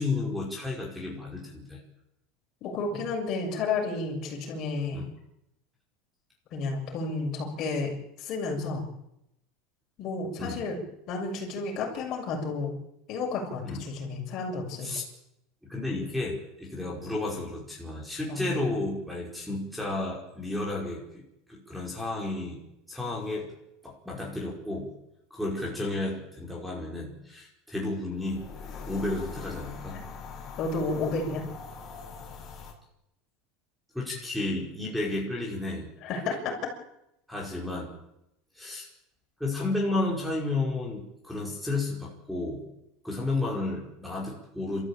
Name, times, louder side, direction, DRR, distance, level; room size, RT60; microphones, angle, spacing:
voice 1, 0.0-1.8 4.9-5.1 10.4-10.6 13.6-13.8 14.8-15.0 15.7-21.2 21.5-22.6 22.9-23.5 23.8-24.9 25.3-28.5 28.9-30.0 33.9-35.9 37.3-37.9 38.6-38.9 39.4-42.6 43.0-44.9, left 2 dB, ahead, -1 dB, 5.3 m, -32 dB
voice 2, 2.6-5.1 6.5-8.9 10.0-10.8 11.1-12.7 13.1-14.9 18.3-18.5 30.6-31.4 36.0-36.5, left 3 dB, 45° left, 1 dB, 7.0 m, -31 dB
sound 1, 28.1-32.7, left 5 dB, 25° left, 6.5 m, -42 dB
28.0 x 14.0 x 8.9 m, 0.84 s
supercardioid pair, 145°, 0 cm